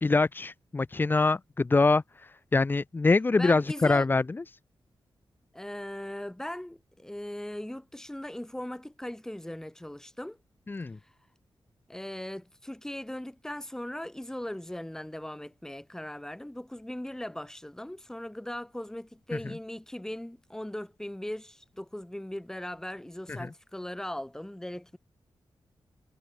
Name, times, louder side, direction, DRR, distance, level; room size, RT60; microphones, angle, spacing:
voice 1, 0.0-4.6 10.7-11.0 23.3-23.5, left 3 dB, 25° left, 0.9 m, -25 dB
voice 2, 3.4-4.1 5.5-10.4 11.9-25.0, left 1 dB, 5° left, 4.6 m, -39 dB
wide cardioid pair, 160°, 9 cm